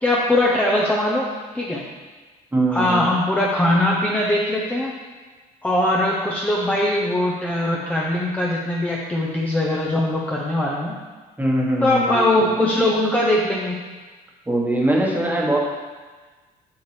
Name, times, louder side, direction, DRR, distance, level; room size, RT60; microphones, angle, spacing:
voice 1, 0.0-1.3 1.5-1.8 2.7-4.9 5.6-11.0 11.8-13.8, left 1 dB, 10° left, -4 dB, 0.8 m, -21 dB
voice 2, 2.5-3.1 11.4-12.5 14.5-15.6, right 1 dB, 10° right, -2 dB, 1.4 m, -21 dB
7.0 x 6.5 x 3.4 m, 1.3 s
cardioid pair, 110°, 17 cm